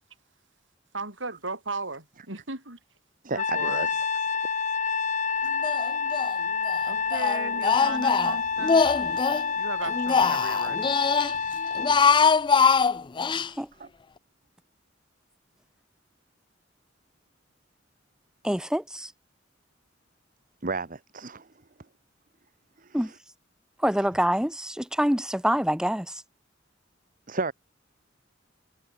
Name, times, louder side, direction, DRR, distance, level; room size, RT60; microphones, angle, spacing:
voice 1, 0.9-2.8 3.3-3.9 6.9-8.8 9.6-10.9, right 3 dB, 75° right, 6.1 m, -36 dB
voice 2, 3.2-4.0 13.8-13.9 20.6-21.5 22.8-23.2 23.9-24.1 27.3-27.5, right 3 dB, 45° right, 1.4 m, -33 dB
Trumpet, 3.4-11.9, left 5 dB, 40° left, 2.4 m, -28 dB
Speech, 5.6-6.3 6.6-9.5 9.8-11.3 11.7-13.5, left 5 dB, 25° left, 0.4 m, -23 dB
voice 3, 18.4-19.1 22.9-23.1 23.8-26.2, equal, 5° right, 1.6 m, -26 dB
head